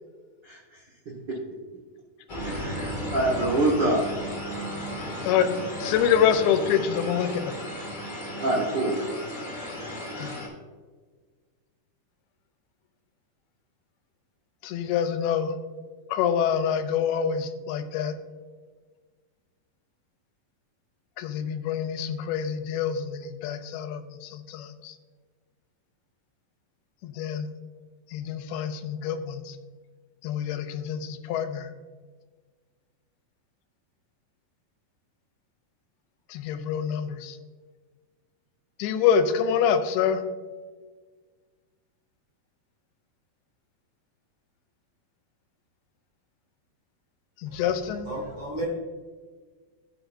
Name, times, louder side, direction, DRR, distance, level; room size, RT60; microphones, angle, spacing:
voice 1, 0.4-0.8 1.3-1.4 2.4-4.1 8.4-9.0, right 2 dB, 80° right, -4 dB, 0.9 m, -25 dB
sound 1, 2.3-10.5, equal, 20° left, 1.2 m, -34 dB
voice 2, 5.2-7.5 10.2-10.3 14.6-15.5 16.1-18.1 21.2-24.9 27.0-27.5 28.1-29.5 30.2-31.7 36.3-37.4 38.8-40.2 47.4-48.1, left 8 dB, 90° left, 9 dB, 2.6 m, -26 dB
voice 3, 47.5-48.7, right 1 dB, 40° right, -2 dB, 2.0 m, -35 dB
13.0 x 6.7 x 2.6 m, 1.4 s
omnidirectional pair, 4.4 m